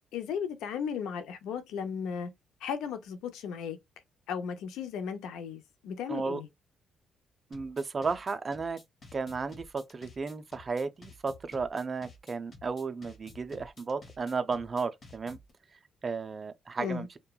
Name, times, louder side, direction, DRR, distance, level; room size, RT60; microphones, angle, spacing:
voice 1, 0.1-2.3 2.6-3.8 4.3-6.5 16.8-17.1, left 7 dB, 85° left, 0.5 m, -35 dB
voice 2, 6.1-6.4 7.5-8.8 9.1-15.4 16.0-17.1, right 4 dB, 35° right, 0.4 m, -34 dB
sound 1, 7.5-15.5, left 3 dB, 45° left, 1.0 m, -52 dB
2.9 x 2.2 x 2.3 m
cardioid pair, 90°, 0 cm